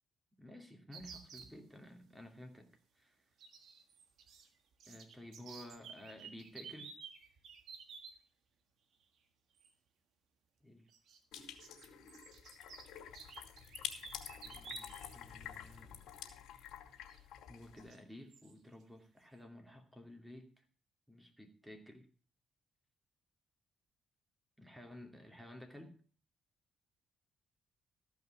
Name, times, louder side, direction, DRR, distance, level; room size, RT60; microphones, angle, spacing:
voice 1, 0.4-3.2 4.9-6.9 10.6-10.9 14.4-15.9 16.9-17.1 17.5-20.6 21.1-22.1 24.6-25.9, left 1 dB, 5° right, 4 dB, 2.6 m, -53 dB
sound 1, 0.9-1.5 3.4-4.5 4.7-8.2 9.6-9.7 10.9-15.2 15.5-15.6 17.1-17.2 17.8-18.0 18.3-18.5, right 5 dB, 75° right, 1.7 m, -53 dB
sound 2, 11.3-17.9, left 9 dB, 85° left, 2.5 m, -49 dB
14.5 x 5.7 x 7.2 m, 0.41 s
cardioid pair, 90°, 0 cm